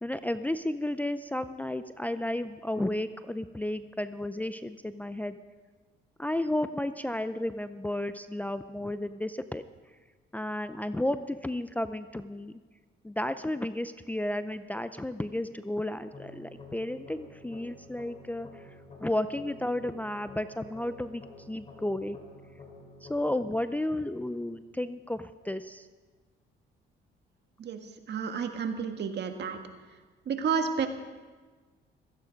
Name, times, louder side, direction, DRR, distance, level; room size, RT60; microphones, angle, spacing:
voice 1, 0.0-5.4 6.2-9.6 10.3-12.6 13.0-18.7 19.0-22.2 23.1-25.9, left 1 dB, 10° left, 11 dB, 0.5 m, -33 dB
sound 1, 16.1-25.1, left 2 dB, 30° left, 3.4 m, -51 dB
voice 2, 28.1-29.6 30.3-30.9, right 6 dB, 60° right, 6 dB, 1.6 m, -30 dB
16.0 x 14.0 x 5.2 m, 1.4 s
cardioid pair, 90°, 20 cm